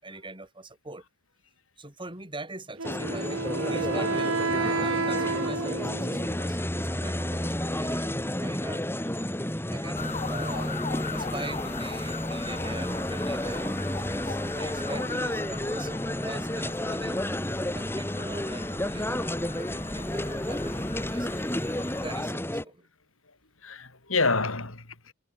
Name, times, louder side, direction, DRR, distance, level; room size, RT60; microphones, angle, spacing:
voice 1, 0.0-1.0 1.8-9.1 9.7-10.8 11.1-17.3 17.6-21.3 22.0-22.9, right 2 dB, 25° right, 7.8 m, -42 dB
sound 1, 2.8-22.6, left 1 dB, 10° left, 3.5 m, -31 dB
Wind instrument woodwind instrument, 2.8-6.4, right 3 dB, 85° right, 2.2 m, -30 dB
sound 2, 10.0-22.2, left 4 dB, 35° left, 2.0 m, -40 dB
voice 2, 23.6-25.1, left 3 dB, 80° left, 4.4 m, -29 dB
head